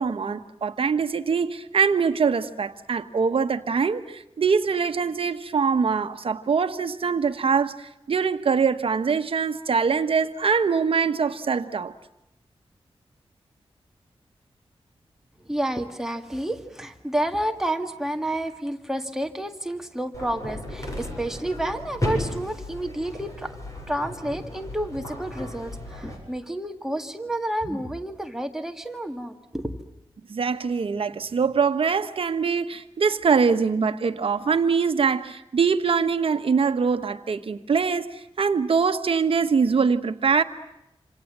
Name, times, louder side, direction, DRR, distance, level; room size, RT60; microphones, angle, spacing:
voice 1, 0.0-11.9 30.3-40.4, right 5 dB, 65° right, 8 dB, 1.3 m, -23 dB
voice 2, 15.5-23.6 23.9-29.8, right 1 dB, 5° right, 5 dB, 1.9 m, -30 dB
sound 1, 20.1-26.2, left 1 dB, 35° left, 7.8 m, -34 dB
27.0 x 27.0 x 7.4 m, 0.85 s
wide cardioid pair, 145°, 10 cm